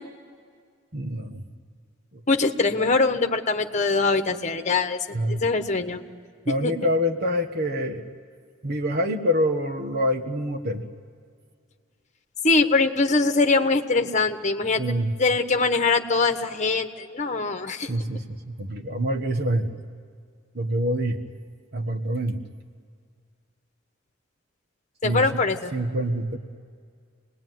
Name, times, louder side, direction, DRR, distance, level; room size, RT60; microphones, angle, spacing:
voice 1, 0.9-1.5 2.1-2.2 5.1-5.4 6.4-8.1 8.6-10.8 14.8-15.1 17.9-19.7 20.5-21.2 21.7-22.4 25.0-25.2 25.7-26.4, equal, 55° right, 6 dB, 1.5 m, -26 dB
voice 2, 2.3-5.0 5.3-6.0 6.6-6.7 12.4-14.8 15.2-17.9 25.0-25.7, left 3 dB, 40° left, 7 dB, 1.3 m, -22 dB
27.0 x 20.0 x 9.4 m, 2.1 s
head